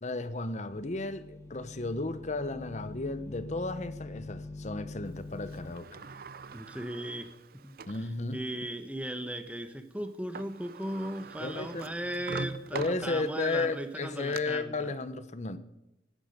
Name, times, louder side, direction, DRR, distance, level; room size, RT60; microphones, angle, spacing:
voice 1, 0.0-6.0 7.9-8.4 11.4-11.8 12.7-15.6, left 3 dB, 40° left, 12 dB, 0.9 m, -34 dB
sound 1, 0.7-5.7, left 2 dB, 15° left, 1.5 m, -44 dB
Sliding door, 5.5-8.1 8.7-8.8 10.1-10.2 10.3-13.5 14.0-14.4, right 4 dB, 55° right, 0.5 m, -43 dB
voice 2, 6.5-7.3 7.6-14.9, right 1 dB, 10° right, 8 dB, 1.0 m, -37 dB
19.5 x 10.0 x 5.2 m, 0.91 s
head